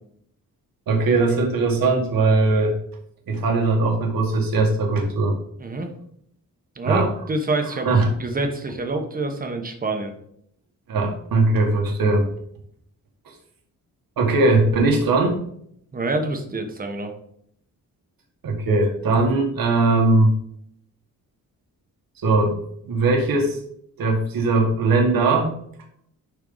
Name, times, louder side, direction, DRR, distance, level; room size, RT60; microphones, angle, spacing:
voice 1, 0.9-2.8 3.3-5.4 6.8-7.1 7.9-8.1 10.9-12.3 14.2-15.4 18.4-20.3 22.2-22.6 22.8-23.6 24.0-25.5, right 3 dB, 75° right, 1 dB, 1.9 m, -19 dB
voice 2, 6.8-10.1 15.9-17.1, right 2 dB, 25° right, 4 dB, 1.2 m, -26 dB
11.0 x 4.6 x 4.0 m, 0.69 s
wide cardioid pair, 170°, 35 cm